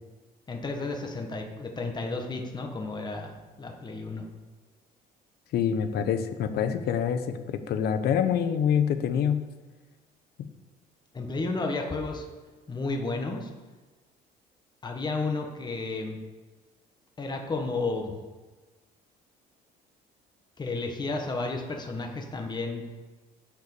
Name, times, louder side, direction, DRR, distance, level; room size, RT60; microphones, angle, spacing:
voice 1, 0.5-4.2 11.1-12.2 12.7-13.5 14.8-16.2 17.2-18.1 20.6-22.8, left 3 dB, 25° left, 3 dB, 1.6 m, -32 dB
voice 2, 5.5-9.4 10.4-10.5, left 8 dB, 70° left, 9 dB, 1.0 m, -26 dB
10.0 x 5.6 x 7.0 m, 1.3 s
cardioid pair, 110°, 17 cm